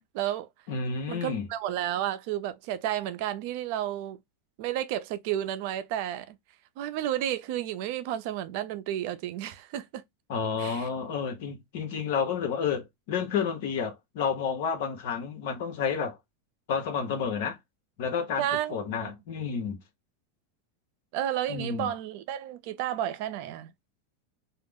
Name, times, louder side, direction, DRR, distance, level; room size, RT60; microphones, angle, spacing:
voice 1, 0.0-0.5 1.1-4.2 4.6-6.4 6.8-10.0 10.6-10.9 18.4-19.1 21.1-23.7, right 12 dB, 60° right, 0.4 m, -32 dB
voice 2, 0.7-1.5 10.3-16.2 16.7-17.6 18.0-18.4 18.7-19.8 21.5-21.9, left 6 dB, 70° left, 0.9 m, -30 dB
2.4 x 2.0 x 3.5 m
supercardioid pair, 130°, 0 cm